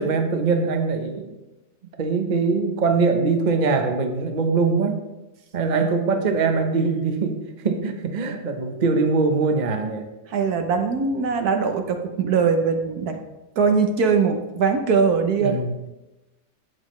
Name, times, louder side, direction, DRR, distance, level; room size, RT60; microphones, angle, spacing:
voice 1, 0.0-1.3 2.0-5.1 5.5-7.4 7.6-10.1 15.4-15.7, right 4 dB, 35° right, 4 dB, 0.8 m, -22 dB
voice 2, 10.3-13.2 13.6-15.6, right 5 dB, 65° right, 5 dB, 1.3 m, -21 dB
12.0 x 8.5 x 3.2 m, 1.0 s
omnidirectional pair, 1.9 m